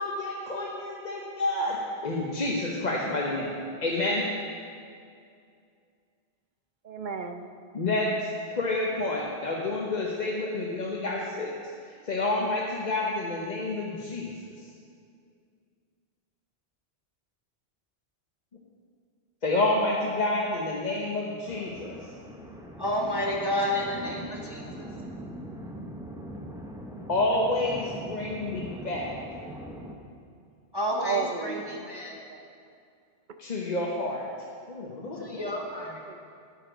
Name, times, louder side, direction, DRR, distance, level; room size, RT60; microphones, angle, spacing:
voice 1, 0.0-4.3 7.7-11.5 11.8-14.3 14.6-14.7 19.4-22.0 27.1-29.1 33.4-34.3 34.7-35.5, left 2 dB, 40° left, -3 dB, 1.0 m, -29 dB
voice 2, 6.8-7.5 24.6-24.7 31.0-32.5 36.1-36.2, right 5 dB, 50° right, 7 dB, 0.7 m, -34 dB
sound 1, 21.4-29.9, right 1 dB, 5° right, 0.7 m, -41 dB
voice 3, 22.8-24.7 30.7-32.2 35.1-36.0, left 1 dB, 25° right, -2 dB, 1.0 m, -30 dB
10.0 x 9.5 x 5.1 m, 2.3 s
omnidirectional pair, 1.1 m